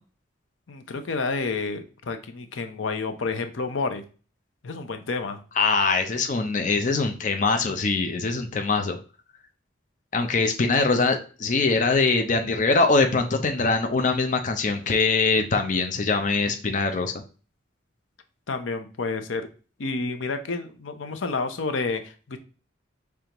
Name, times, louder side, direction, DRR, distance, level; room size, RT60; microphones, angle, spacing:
voice 1, 0.7-4.0 4.6-5.4 18.5-19.5 19.8-22.4, left 4 dB, 85° left, 8 dB, 0.6 m, -30 dB
voice 2, 5.6-9.0 10.1-17.1, left 3 dB, 40° left, 5 dB, 0.5 m, -23 dB
5.1 x 3.3 x 2.9 m, 0.36 s
head